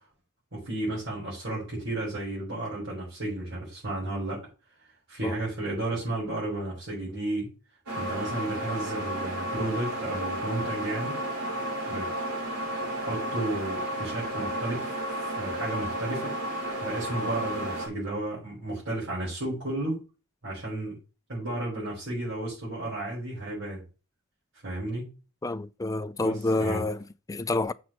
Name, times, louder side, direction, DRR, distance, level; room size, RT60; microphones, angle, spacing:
voice 1, 0.5-4.4 5.1-7.5 8.0-11.2 11.9-12.3 13.0-16.3 16.8-20.0 20.4-21.0 21.3-23.8 24.6-25.1 26.2-26.9, right 2 dB, 55° right, 5.1 m, -33 dB
sound 1, 7.9-17.9, right 1 dB, 80° right, 4.4 m, -32 dB
voice 2, 25.4-27.7, left 2 dB, 15° left, 0.3 m, -28 dB
7.3 x 4.4 x 6.2 m
head